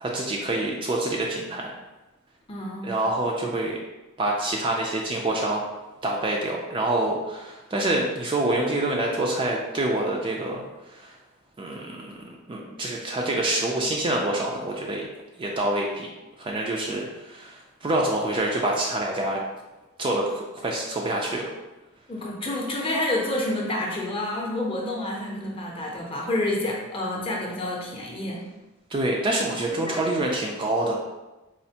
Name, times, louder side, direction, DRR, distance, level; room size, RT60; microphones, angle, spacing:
voice 1, 0.0-1.7 2.8-3.8 4.2-5.6 6.0-10.7 10.9-11.1 11.6-12.1 12.5-15.1 15.4-16.1 16.4-19.4 20.0-21.5 28.9-31.0, right 1 dB, 25° right, -1 dB, 0.3 m, -26 dB
voice 2, 2.5-3.1 22.1-28.4 29.7-30.3, left 1 dB, 25° left, -2 dB, 0.6 m, -29 dB
4.2 x 2.4 x 2.7 m, 1.1 s
head